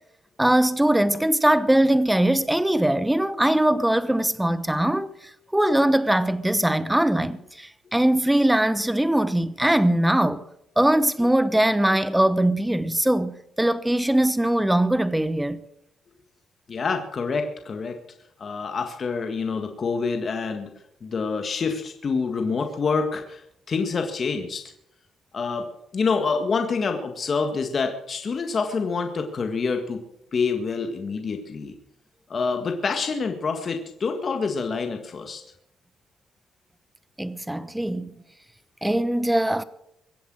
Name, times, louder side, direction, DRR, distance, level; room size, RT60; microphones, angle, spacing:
voice 1, 0.4-5.1 5.5-10.4 10.8-15.6 37.2-38.1 38.8-39.6, right 1 dB, 5° right, 1.0 m, -21 dB
voice 2, 16.7-18.0 18.4-20.7 21.0-23.4 23.7-24.6 25.3-25.7 25.9-30.0 30.3-31.7 32.3-35.4, left 4 dB, 45° left, 1.8 m, -27 dB
23.0 x 8.1 x 6.3 m
cardioid pair, 90°, 0 cm